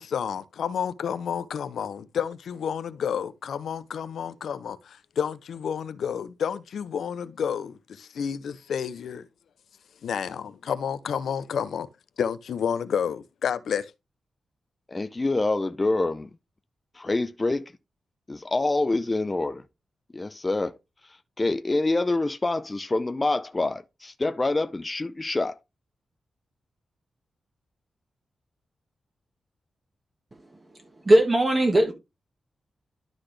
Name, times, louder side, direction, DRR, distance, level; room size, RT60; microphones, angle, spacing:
voice 1, 0.0-9.3 10.0-11.9 12.2-13.9, left 7 dB, 85° left, 0.6 m, -30 dB
voice 2, 14.9-16.3 17.0-17.7 18.3-19.6 20.1-20.7 21.4-25.6, left 2 dB, 20° left, 0.5 m, -26 dB
voice 3, 30.3-31.9, right 1 dB, 20° right, 1.2 m, -21 dB
12.0 x 4.0 x 3.2 m
wide cardioid pair, 130°, 0 cm